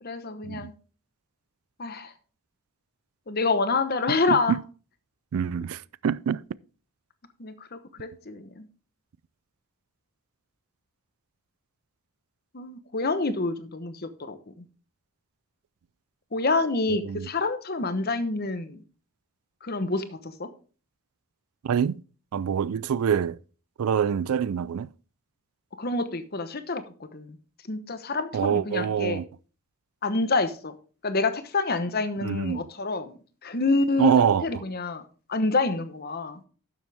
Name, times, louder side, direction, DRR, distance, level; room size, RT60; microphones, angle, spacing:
voice 1, 0.0-0.7 1.8-2.1 3.3-4.6 7.4-8.7 12.5-14.6 16.3-18.8 19.6-20.5 25.8-27.4 27.7-29.2 30.0-30.7 31.0-33.1 33.4-35.0 35.3-36.4, left 3 dB, 45° left, 1.0 m, -27 dB
voice 2, 4.3-4.6 5.3-6.4 17.1-17.3 21.6-22.0 22.3-23.4 23.8-24.9 28.3-29.2 32.2-32.7 34.0-34.5, right 7 dB, 75° right, 0.4 m, -25 dB
11.5 x 7.2 x 3.5 m
head